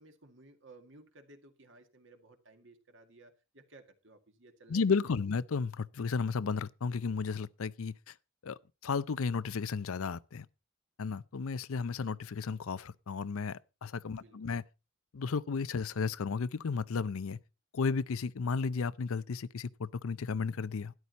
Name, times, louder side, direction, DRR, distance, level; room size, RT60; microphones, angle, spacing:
voice 1, 0.0-4.9 14.1-14.6, right 2 dB, 60° right, 1.9 m, -58 dB
voice 2, 4.7-8.1 8.4-10.5 11.0-14.6 15.1-17.4 17.7-20.9, left 5 dB, 80° left, 0.5 m, -33 dB
13.0 x 11.0 x 4.1 m
head